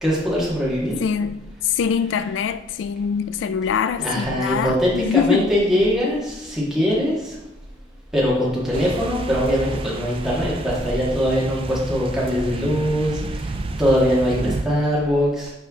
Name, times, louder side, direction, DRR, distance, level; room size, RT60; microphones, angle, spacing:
voice 1, 0.0-1.0 4.0-7.4 8.1-15.5, equal, 5° right, 1.8 m, -22 dB
voice 2, 1.0-5.5, left 7 dB, 85° left, 0.3 m, -23 dB
sound 1, 8.7-14.6, right 2 dB, 30° right, 0.4 m, -31 dB
9.9 x 3.4 x 3.6 m
head